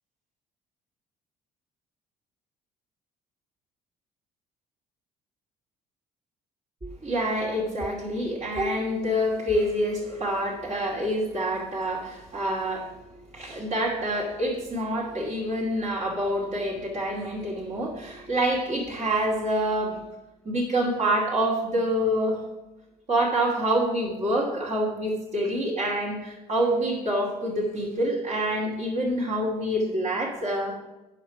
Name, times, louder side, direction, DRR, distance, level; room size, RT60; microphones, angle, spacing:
voice 1, 6.8-12.9 13.3-20.0 20.4-22.4 23.1-30.8, right 1 dB, 35° right, -4 dB, 2.6 m, -27 dB
9.0 x 6.6 x 5.8 m, 1.0 s
hypercardioid pair, 55°, 21 cm